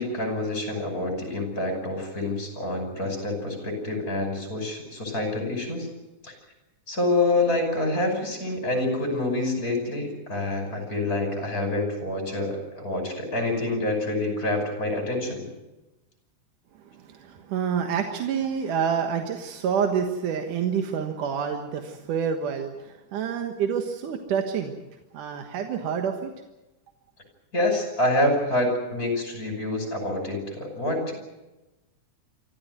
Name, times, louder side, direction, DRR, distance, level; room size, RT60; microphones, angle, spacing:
voice 1, 0.0-5.9 6.2-6.3 6.9-15.5 27.5-31.1, left 2 dB, 25° left, 3 dB, 6.0 m, -27 dB
voice 2, 16.8-24.7 25.1-26.3, right 7 dB, 80° right, 4 dB, 3.0 m, -28 dB
24.5 x 15.0 x 9.4 m, 1.0 s
omnidirectional pair, 3.6 m